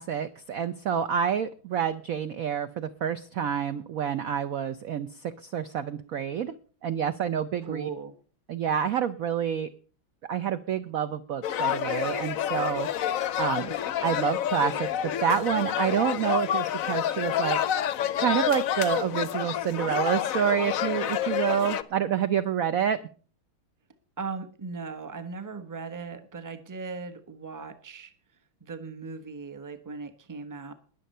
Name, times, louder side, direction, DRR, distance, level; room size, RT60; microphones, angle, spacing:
voice 1, 0.0-6.6 6.8-7.9 8.5-9.7 10.3-13.7 14.0-17.6 18.2-23.0, right 8 dB, 65° right, 11 dB, 0.8 m, -28 dB
voice 2, 7.6-8.1 24.2-28.1 28.6-30.7, right 4 dB, 15° right, 9 dB, 0.8 m, -38 dB
sound 1, 11.4-21.8, left 10 dB, 65° left, 0.8 m, -28 dB
20.5 x 7.0 x 5.5 m, 0.40 s
omnidirectional pair, 2.3 m